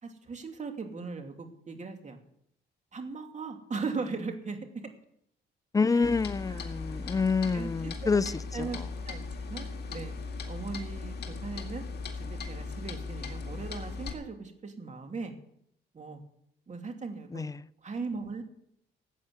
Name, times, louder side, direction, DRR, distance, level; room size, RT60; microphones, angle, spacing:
voice 1, 0.0-2.2 2.9-4.6 5.9-6.1 6.5-6.7 7.5-8.2 8.5-10.1 10.5-11.8 12.1-15.3 15.9-16.2 16.7-17.4 17.8-18.4, right 4 dB, 35° right, 2.6 m, -38 dB
voice 2, 5.7-8.8 17.3-17.6, left 4 dB, 15° left, 0.5 m, -28 dB
Clock, 6.0-14.1, left 4 dB, 55° left, 2.1 m, -38 dB
14.5 x 8.5 x 8.1 m
cardioid pair, 90°, 20 cm